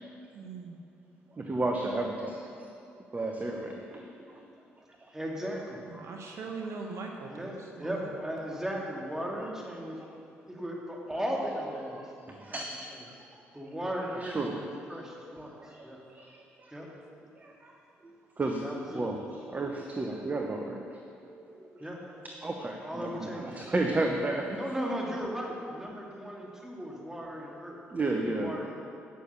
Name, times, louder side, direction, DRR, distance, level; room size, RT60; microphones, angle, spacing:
voice 1, 0.3-0.8 5.9-8.2, right 4 dB, 60° right, 1 dB, 1.1 m, -41 dB
voice 2, 1.3-2.7 3.1-4.4 5.0-5.1 6.0-6.1 6.6-6.8 9.9-10.1 12.0-12.9 13.5-13.6 14.1-14.7 15.0-16.7 17.4-17.8 18.0-21.0 21.2-21.9 22.2-24.6 27.9-28.5, right 2 dB, 30° right, 2 dB, 0.9 m, -34 dB
voice 3, 5.1-5.8 7.3-10.0 10.5-12.0 12.4-12.6 13.5-15.6 15.8-16.0 16.7-16.9 18.6-19.1 21.8-22.0 22.8-23.5 24.5-27.8 28.2-28.7, equal, 10° right, -2 dB, 2.4 m, -36 dB
9.1 x 6.6 x 6.7 m, 2.6 s
hypercardioid pair, 50°, 5 cm